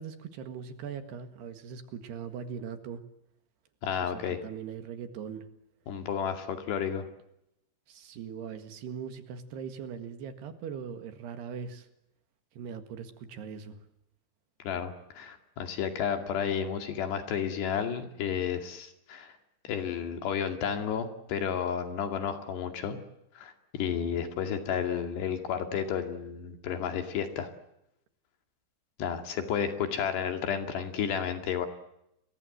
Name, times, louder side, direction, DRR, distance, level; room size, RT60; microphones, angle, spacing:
voice 1, 0.0-3.0 4.0-5.5 7.9-11.9 12.6-13.8, right 7 dB, 70° right, 8 dB, 3.6 m, -40 dB
voice 2, 3.8-4.4 5.9-7.1 14.6-19.3 19.6-23.0 23.4-27.5 29.0-31.7, left 8 dB, 70° left, 6 dB, 4.3 m, -32 dB
30.0 x 22.5 x 7.9 m, 0.82 s
omnidirectional pair, 5.2 m